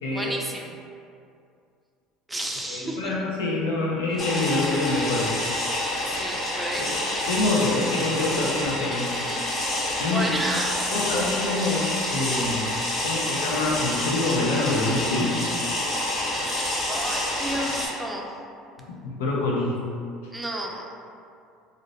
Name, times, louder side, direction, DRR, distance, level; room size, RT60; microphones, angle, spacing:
voice 1, 0.1-0.7 2.3-3.1 6.1-6.9 9.1-9.7 10.0-10.8 16.9-18.2 20.3-20.9, right 1 dB, 10° right, -1 dB, 0.5 m, -32 dB
voice 2, 2.7-5.3 6.8-6.9 7.3-9.1 10.0-10.3 10.9-12.7 13.0-15.4 18.9-19.7, left 2 dB, 85° left, -3 dB, 0.5 m, -26 dB
sound 1, 4.2-17.9, left 1 dB, 50° left, 1.2 m, -28 dB
2.5 x 2.1 x 3.9 m, 2.4 s
hypercardioid pair, 75°, 0 cm